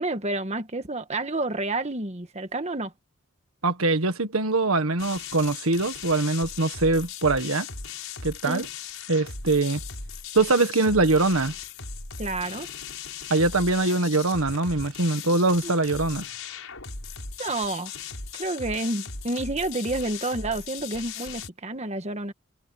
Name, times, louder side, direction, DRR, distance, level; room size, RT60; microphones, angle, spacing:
voice 1, 0.0-2.9 8.4-8.6 12.2-12.7 15.6-15.7 17.4-17.9 18.3-22.3, right 2 dB, 30° right, 1.7 m, -29 dB
voice 2, 3.6-7.7 8.2-8.6 9.1-9.8 10.3-11.5 13.3-16.2, right 3 dB, 85° right, 1.6 m, -23 dB
sound 1, 5.0-21.5, left 6 dB, 75° left, 5.9 m, -38 dB
head